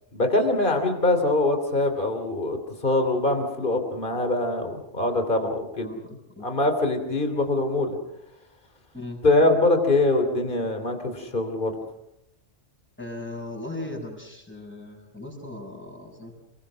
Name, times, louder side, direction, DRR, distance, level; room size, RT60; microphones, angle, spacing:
voice 1, 0.1-5.9 6.4-8.0 9.2-11.8, left 2 dB, 40° left, 6 dB, 3.1 m, -23 dB
voice 2, 5.8-6.4 8.9-9.2 13.0-16.4, left 2 dB, 10° left, 0 dB, 6.6 m, -38 dB
29.0 x 21.5 x 6.2 m, 0.82 s
omnidirectional pair, 1.3 m